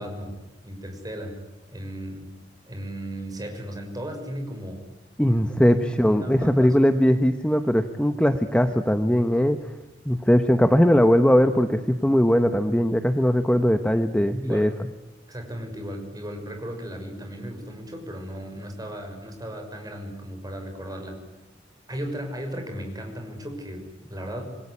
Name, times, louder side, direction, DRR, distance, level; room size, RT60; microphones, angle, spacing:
voice 1, 0.0-1.4 1.7-2.3 2.7-4.8 5.2-6.7 14.4-14.7 15.3-21.2 21.9-24.4, equal, 20° right, 4 dB, 6.3 m, -36 dB
voice 2, 5.2-9.6 10.1-14.7, equal, 5° left, 8 dB, 1.1 m, -20 dB
27.5 x 20.5 x 9.9 m, 1.0 s
head